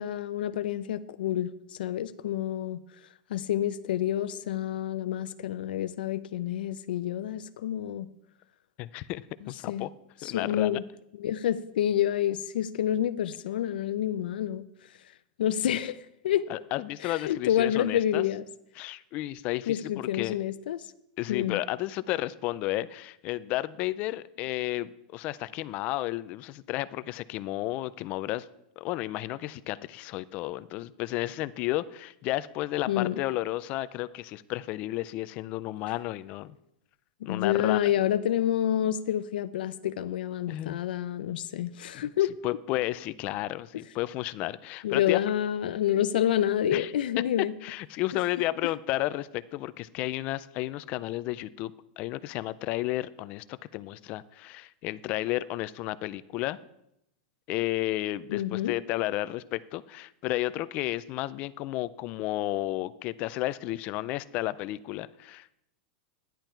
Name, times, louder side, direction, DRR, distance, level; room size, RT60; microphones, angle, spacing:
voice 1, 0.0-2.8 3.3-8.1 9.4-9.9 10.2-10.8 11.2-14.6 15.4-16.5 17.0-18.4 19.7-20.9 21.3-21.6 32.9-33.2 37.2-42.3 44.8-47.5 48.1-48.2 58.3-58.7, left 11 dB, 85° left, 0.5 m, -28 dB
voice 2, 8.8-9.9 10.2-10.8 16.5-18.2 18.8-20.4 21.2-28.5 28.8-36.5 37.2-37.8 40.5-40.8 41.9-42.0 42.4-45.2 46.7-46.9 47.6-56.6 57.5-65.5, left 16 dB, 25° left, 0.3 m, -32 dB
13.5 x 10.5 x 4.5 m
supercardioid pair, 175°, 5 cm